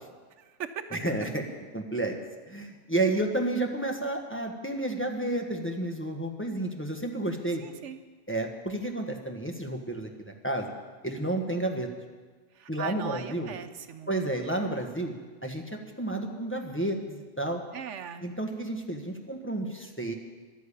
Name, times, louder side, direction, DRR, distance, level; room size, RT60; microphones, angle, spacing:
voice 1, 0.4-0.9 7.6-8.0 12.5-14.1 17.7-18.3, right 8 dB, 85° right, 9 dB, 1.1 m, -39 dB
voice 2, 0.9-1.4 1.7-2.2 2.5-7.6 8.3-10.7 11.0-11.9 12.7-13.5 14.1-15.1 15.4-15.6 16.0-17.6 18.2-20.1, right 2 dB, 10° left, 2 dB, 1.2 m, -31 dB
12.0 x 10.5 x 8.5 m, 1.4 s
omnidirectional pair, 1.2 m